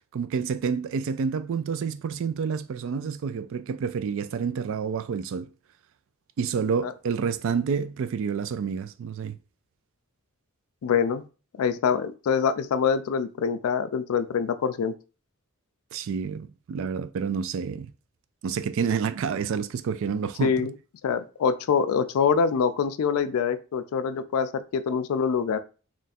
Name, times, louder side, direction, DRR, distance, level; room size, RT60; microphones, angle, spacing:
voice 1, 0.1-5.5 6.4-9.4 15.9-17.9 18.4-20.5, right 6 dB, 60° right, 0.3 m, -29 dB
voice 2, 10.8-11.2 11.6-14.9 20.4-20.7 21.0-25.6, left 6 dB, 80° left, 0.3 m, -25 dB
3.0 x 2.4 x 4.1 m
head